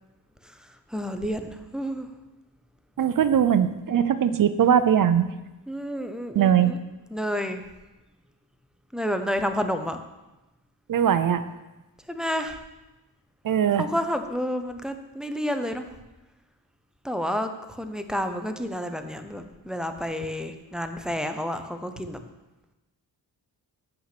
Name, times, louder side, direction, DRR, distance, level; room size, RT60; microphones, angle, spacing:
voice 1, 0.9-2.1 5.7-6.8 7.1-7.6 8.9-10.0 12.1-12.6 13.8-15.8 17.0-22.2, equal, ahead, 6 dB, 0.7 m, -30 dB
voice 2, 3.0-5.3 6.3-6.8 10.9-11.4 13.4-13.8, right 9 dB, 55° right, 12 dB, 0.6 m, -20 dB
8.2 x 5.8 x 5.9 m, 1.0 s
cardioid pair, 100°, 40 cm